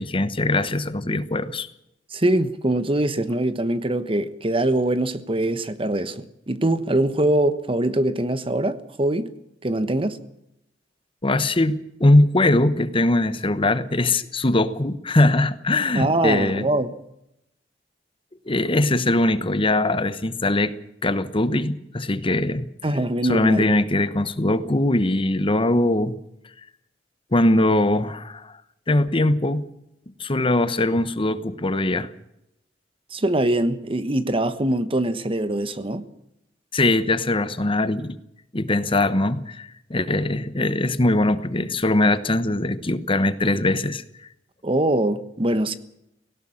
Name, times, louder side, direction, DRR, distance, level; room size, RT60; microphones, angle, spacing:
voice 1, 0.0-1.7 11.2-16.7 18.5-20.7 21.0-22.7 23.2-26.2 27.3-28.6 28.9-29.6 30.2-32.1 36.7-38.2 38.5-44.0, left 2 dB, 30° left, 1.0 m, -21 dB
voice 2, 2.1-9.3 9.6-10.2 15.9-17.0 22.8-23.7 33.1-36.0 44.6-45.7, right 1 dB, 30° right, 1.2 m, -23 dB
18.0 x 17.0 x 8.8 m
head